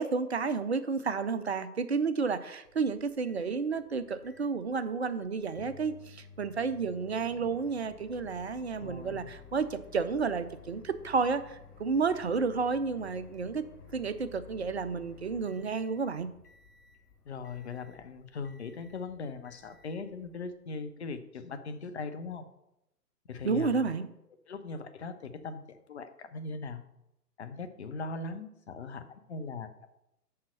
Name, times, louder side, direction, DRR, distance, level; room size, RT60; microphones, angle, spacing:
voice 1, 0.0-13.6 13.9-16.3 23.4-24.1, right 5 dB, 45° right, 11 dB, 0.5 m, -31 dB
Microwave oven, 2.6-20.6, left 6 dB, 65° left, 1.3 m, -54 dB
voice 2, 8.8-9.3 17.3-22.5 23.3-23.9 24.5-26.8 27.4-29.7, left 4 dB, 45° left, 9 dB, 0.8 m, -40 dB
6.6 x 5.6 x 5.4 m, 0.85 s
figure-of-eight pair, 130°, 49 cm